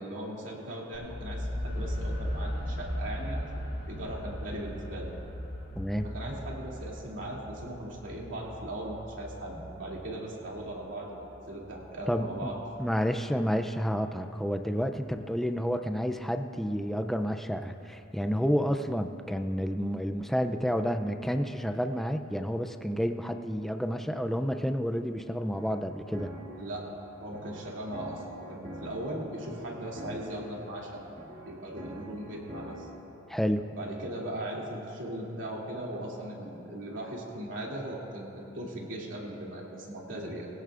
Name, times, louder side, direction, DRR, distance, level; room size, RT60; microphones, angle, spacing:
voice 1, 0.0-3.5 3.9-5.1 6.0-12.6 26.6-26.9 27.2-31.0 31.5-32.9 33.7-40.5, right 1 dB, 70° right, -4 dB, 2.7 m, -38 dB
sound 1, 0.9-12.8, equal, 80° left, 3.5 m, -38 dB
voice 2, 5.8-6.1 12.1-12.5 12.8-26.3 33.3-33.6, equal, ahead, 6 dB, 0.4 m, -30 dB
sound 2, 25.3-33.0, equal, 50° right, 2.8 m, -46 dB
22.0 x 16.0 x 2.5 m, 3.0 s
head